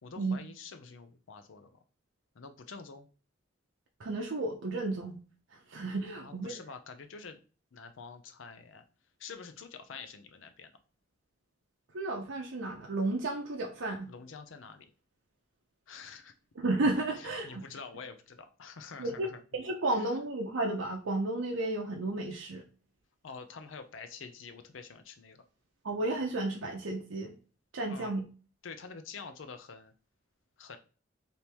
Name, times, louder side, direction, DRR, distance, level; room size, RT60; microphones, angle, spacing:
voice 1, 0.0-1.7 2.3-3.1 6.2-7.4 7.7-8.8 9.2-10.7 14.1-14.9 15.9-16.3 17.1-19.4 19.9-20.1 23.2-25.4 27.9-28.1 28.6-29.9 30.6-30.8, left 5 dB, 85° left, 8 dB, 0.6 m, -47 dB
voice 2, 4.0-5.2 5.5-6.5 11.9-14.1 16.6-17.6 19.0-22.6 25.8-27.3 27.7-28.2, right 2 dB, 85° right, 1 dB, 0.6 m, -33 dB
3.4 x 2.8 x 4.4 m, 0.36 s
head